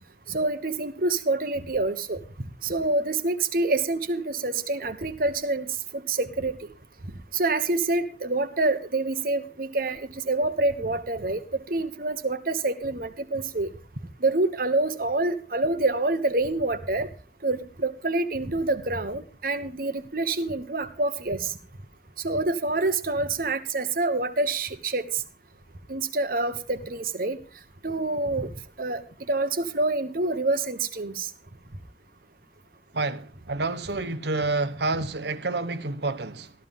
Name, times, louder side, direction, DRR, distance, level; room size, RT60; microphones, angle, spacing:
voice 1, 0.3-2.2 2.6-6.7 7.3-11.4 11.7-13.7 14.2-17.1 17.4-21.5 22.2-25.2 25.9-27.4 27.8-28.5 28.8-29.0 29.3-31.3, right 2 dB, 50° right, 1.2 m, -27 dB
voice 2, 32.9-36.5, right 3 dB, 70° right, 1.0 m, -29 dB
14.0 x 13.5 x 3.6 m
head